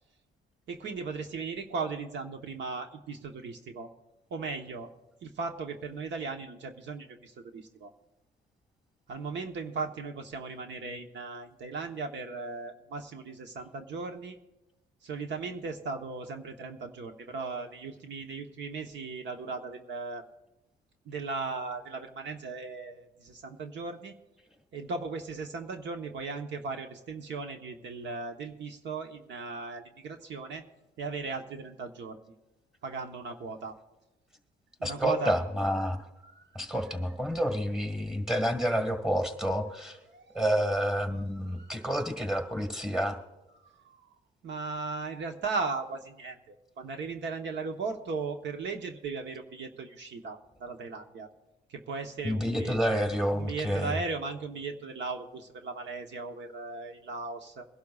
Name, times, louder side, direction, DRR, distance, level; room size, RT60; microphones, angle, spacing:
voice 1, 0.7-3.9 4.3-4.9 5.2-7.9 9.1-14.4 15.0-20.2 21.0-24.1 24.7-30.6 31.0-32.2 32.8-33.7 34.8-35.3 36.3-36.4 40.1-40.4 41.6-41.9 43.8-44.0 44.4-51.3 51.7-52.8 53.3-57.6, right 4 dB, 65° right, 5 dB, 1.1 m, -37 dB
voice 2, 34.8-36.0 36.6-40.0 40.3-43.2 52.2-54.0, equal, 5° right, 6 dB, 1.8 m, -29 dB
23.0 x 11.5 x 2.4 m, 0.99 s
cardioid pair, 90°, 20 cm